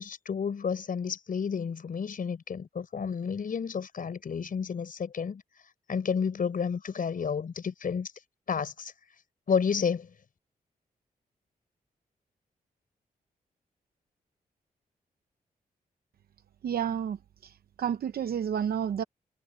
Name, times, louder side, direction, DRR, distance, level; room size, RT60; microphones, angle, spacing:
voice 1, 0.0-5.4 5.9-8.1 8.5-8.9 9.5-10.1, left 6 dB, 60° left, 5.5 m, -31 dB
voice 2, 16.6-17.2 17.4-19.0, right 8 dB, 75° right, 0.8 m, -30 dB
cardioid pair, 85°, 16 cm